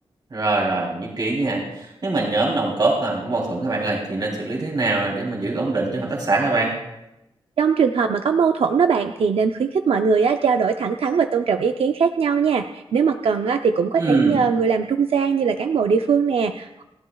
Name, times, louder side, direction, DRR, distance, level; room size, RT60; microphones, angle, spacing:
voice 1, 0.3-6.7 14.0-14.4, right 2 dB, 45° right, -1 dB, 3.2 m, -23 dB
voice 2, 7.6-16.8, right 6 dB, 90° right, 5 dB, 0.6 m, -20 dB
29.5 x 11.5 x 2.3 m, 0.91 s
wide cardioid pair, 160°, 10 cm